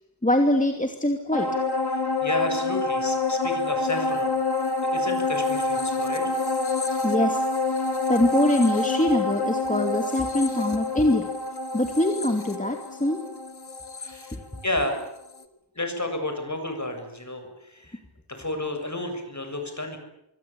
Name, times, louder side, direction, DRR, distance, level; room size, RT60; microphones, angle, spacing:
voice 1, 0.2-1.6 7.0-7.4 8.1-11.3 11.7-13.3 14.3-14.4, left 1 dB, 20° left, 4 dB, 2.6 m, -23 dB
sound 1, 1.3-15.0 15.4-15.5, left 3 dB, 65° left, 2.4 m, -27 dB
voice 2, 1.9-4.3 4.8-6.3 14.0-15.0 15.8-18.0 18.3-20.0, left 1 dB, 40° left, 6 dB, 7.4 m, -31 dB
25.5 x 24.5 x 8.7 m, 0.85 s
wide cardioid pair, 70°, 42 cm